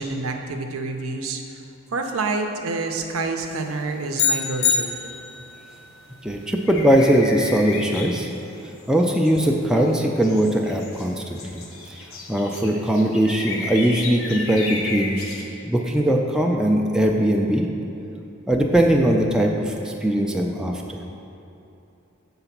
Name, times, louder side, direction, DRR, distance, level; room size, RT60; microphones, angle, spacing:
voice 1, 0.0-1.6 1.9-5.0, right 3 dB, 85° right, 4 dB, 0.6 m, -28 dB
sound 1, 3.4-15.4, left 3 dB, 75° left, 0.9 m, -36 dB
sound 2, 4.2-5.6, left 6 dB, 55° left, 0.5 m, -23 dB
voice 2, 6.2-8.3 8.9-11.6 12.3-15.2 15.6-17.7 18.5-20.8, right 1 dB, 5° right, 0 dB, 0.3 m, -20 dB
6.9 x 3.9 x 5.8 m, 2.8 s
head